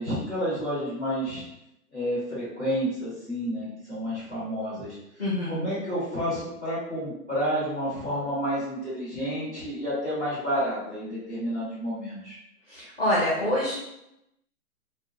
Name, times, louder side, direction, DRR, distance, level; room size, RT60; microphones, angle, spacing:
voice 1, 0.0-1.4 1.9-5.0 5.4-12.4, equal, 10° right, -10 dB, 0.9 m, -30 dB
voice 2, 5.2-5.6 12.7-13.8, left 1 dB, 45° left, -6 dB, 0.5 m, -26 dB
2.3 x 2.1 x 2.8 m, 0.85 s
hypercardioid pair, 180°, 47 cm